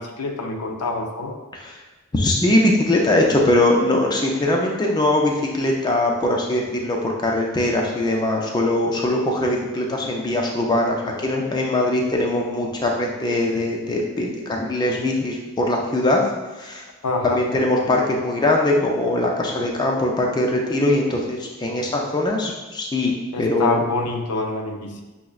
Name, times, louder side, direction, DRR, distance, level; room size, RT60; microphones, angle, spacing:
voice 1, 0.0-1.4 17.0-17.5 23.3-25.0, left 2 dB, 85° left, 3 dB, 0.5 m, -26 dB
voice 2, 2.1-16.3 16.6-16.8 17.2-23.8, left 1 dB, 20° left, 0 dB, 0.3 m, -21 dB
5.7 x 2.1 x 2.3 m, 1.2 s
head